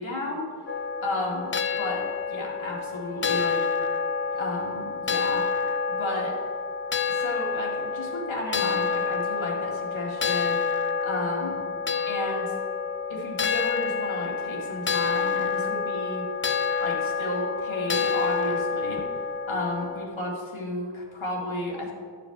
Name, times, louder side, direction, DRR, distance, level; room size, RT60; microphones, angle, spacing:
voice 1, 0.0-0.7 1.0-2.0 2.3-3.6 4.3-6.4 7.1-11.6 12.1-12.5 13.1-16.3 16.8-21.9, left 1 dB, 85° left, -3 dB, 2.1 m, -33 dB
sound 1, 0.7-20.1, left 5 dB, 25° left, 0.4 m, -28 dB
13.0 x 6.7 x 3.3 m, 2.1 s
wide cardioid pair, 90°, 46 cm